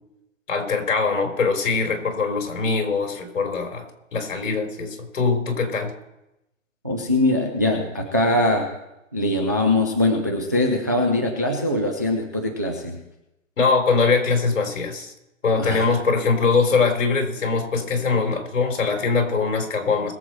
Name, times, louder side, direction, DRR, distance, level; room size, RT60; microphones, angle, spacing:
voice 1, 0.5-3.9 4.1-5.9 13.6-15.1 15.4-20.1, left 4 dB, 70° left, 4 dB, 4.0 m, -22 dB
voice 2, 6.8-8.7 9.1-13.0 15.6-15.9, left 1 dB, 15° right, 1 dB, 0.4 m, -22 dB
22.0 x 7.7 x 4.5 m, 0.89 s
hypercardioid pair, 170°, 40 cm